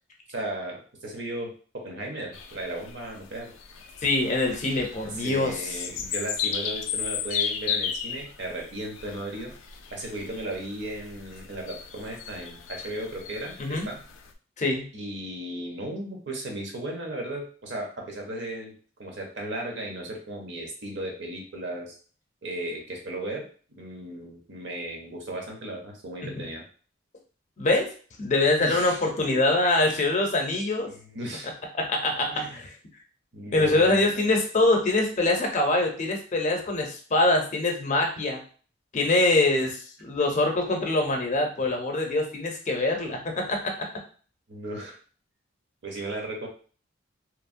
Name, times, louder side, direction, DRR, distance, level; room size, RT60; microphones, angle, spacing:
voice 1, 0.3-3.5 5.2-9.5 9.9-14.0 14.9-18.7 19.0-22.0 22.4-23.5 23.7-26.6 28.6-29.0 29.3-29.4 30.9-31.5 32.3-32.6 33.3-34.0 44.5-45.0 45.8-46.5, right 1 dB, 65° right, 1 dB, 0.8 m, -35 dB
sound 1, 2.3-14.3, left 7 dB, 85° left, 0.4 m, -35 dB
voice 2, 4.0-5.8 13.6-13.9 14.6-14.9 26.2-26.3 27.6-27.9 28.2-30.9 31.7-32.7 33.5-38.4 38.9-43.7, left 2 dB, 40° left, 2 dB, 0.6 m, -24 dB
3.0 x 2.1 x 2.5 m, 0.41 s
head